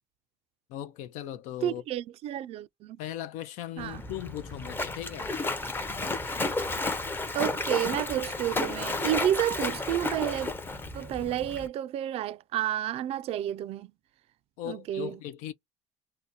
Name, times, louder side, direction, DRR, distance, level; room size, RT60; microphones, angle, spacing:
voice 1, 0.7-1.8 3.0-5.3 14.6-15.5, left 12 dB, 75° left, 0.4 m, -38 dB
voice 2, 1.6-3.0 3.8-4.0 7.3-10.5 10.9-13.9 14.6-15.2, right 12 dB, 50° right, 0.4 m, -30 dB
Splash splatter, 3.8-11.7, left 3 dB, 15° left, 0.6 m, -32 dB
2.7 x 2.1 x 3.8 m
cardioid pair, 125°, 13 cm